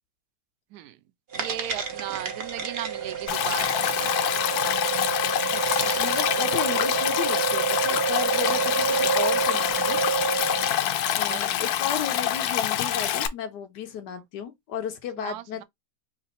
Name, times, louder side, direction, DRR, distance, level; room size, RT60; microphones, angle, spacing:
sound 1, 1.3-10.9, right 7 dB, 50° right, 0.8 m, -28 dB
voice 1, 1.4-3.8 11.3-12.0 14.1-14.2 15.2-15.6, right 12 dB, 75° right, 1.1 m, -37 dB
Stream, 3.3-13.3, left 11 dB, 70° left, 1.0 m, -26 dB
voice 2, 5.5-10.0 11.1-15.6, left 7 dB, 90° left, 1.5 m, -34 dB
4.0 x 2.5 x 4.1 m
omnidirectional pair, 1.8 m